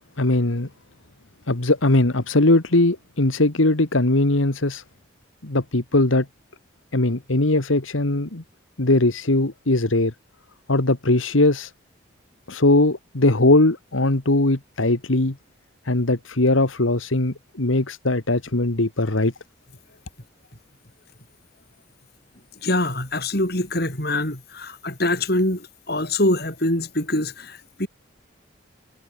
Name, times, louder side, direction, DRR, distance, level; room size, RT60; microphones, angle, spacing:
voice 1, 0.2-0.7 1.5-4.8 5.4-6.3 6.9-8.4 8.8-10.1 10.7-11.7 12.5-15.4 15.9-19.3, left 2 dB, 85° left, 1.9 m, -20 dB
voice 2, 22.6-27.9, left 1 dB, 50° left, 5.6 m, -24 dB
head